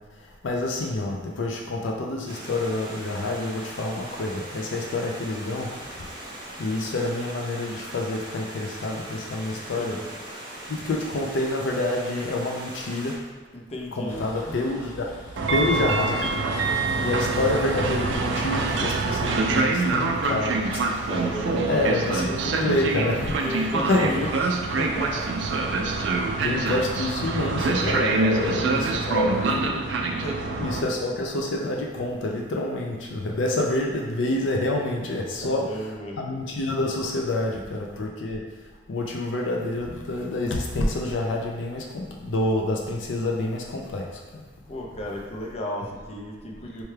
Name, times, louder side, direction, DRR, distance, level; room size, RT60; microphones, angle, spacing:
voice 1, 0.4-5.7 6.6-10.0 10.7-13.2 14.0-15.1 15.5-16.3 17.0-20.6 21.7-23.6 23.9-24.3 26.4-29.7 30.5-35.7 36.2-38.4 38.9-44.1 44.3-44.4, left 2 dB, 85° left, 0 dB, 0.5 m, -27 dB
Stream, 2.3-13.2, right 1 dB, 25° right, 0.7 m, -40 dB
voice 2, 9.5-10.2 13.5-14.2 21.0-21.9 22.4-22.6 23.4-25.3 25.6-26.2 27.8-29.9 30.2-30.8 35.4-36.2 44.7-46.8, equal, 35° left, -1 dB, 0.5 m, -35 dB
Vehicle, 14.1-31.0, equal, 70° left, 1.3 m, -45 dB
Train, 15.4-30.8, right 3 dB, 70° right, 0.4 m, -25 dB
4.4 x 2.3 x 3.2 m, 1.5 s
head